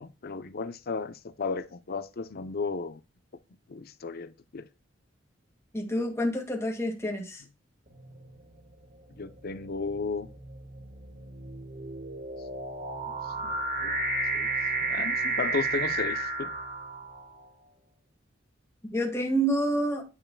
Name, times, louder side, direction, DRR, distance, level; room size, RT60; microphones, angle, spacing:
voice 1, 0.0-3.0 3.7-4.7 9.2-10.3 13.4-13.5 13.8-14.0 14.3-14.5 14.8-16.5, left 4 dB, 55° left, 0.6 m, -34 dB
voice 2, 5.7-7.4 18.9-20.0, right 1 dB, 15° left, 1.8 m, -28 dB
sound 1, 8.0-8.4 9.2-17.4, right 3 dB, 50° right, 2.1 m, -32 dB
9.6 x 5.5 x 2.2 m
head